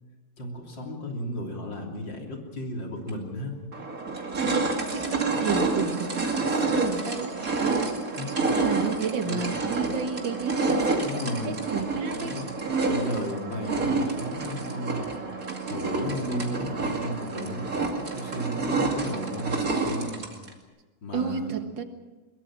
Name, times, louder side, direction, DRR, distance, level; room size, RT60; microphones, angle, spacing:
voice 1, 0.4-3.5 8.2-8.3 9.3-9.4 11.0-11.6 12.2-15.2 15.7-17.7 18.0-20.3 21.0-21.5, left 1 dB, 80° left, 1 dB, 3.9 m, -34 dB
sound 1, 3.1-3.2 3.7-20.5, right 3 dB, 50° right, 2.9 m, -28 dB
voice 2, 4.6-7.3 7.6-7.8 8.4-12.4 16.2-16.8 21.1-21.8, right 6 dB, 85° right, 7 dB, 2.3 m, -32 dB
22.5 x 22.0 x 6.2 m, 1.2 s
omnidirectional pair, 2.0 m